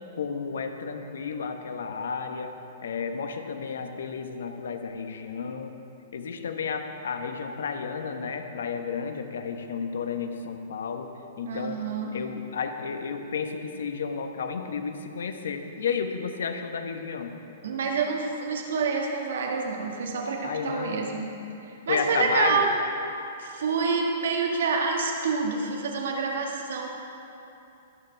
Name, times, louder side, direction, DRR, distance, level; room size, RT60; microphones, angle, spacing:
voice 1, 0.1-2.5 2.8-5.7 6.1-11.1 11.4-11.8 12.1-17.3 20.4-21.1 21.9-22.6, left 6 dB, 70° left, 6 dB, 1.1 m, -32 dB
voice 2, 11.4-12.2 17.6-21.3 21.6-22.7 23.4-26.9, right 4 dB, 70° right, 1 dB, 2.0 m, -27 dB
23.5 x 9.2 x 3.4 m, 2.8 s
hypercardioid pair, 115°, 0 cm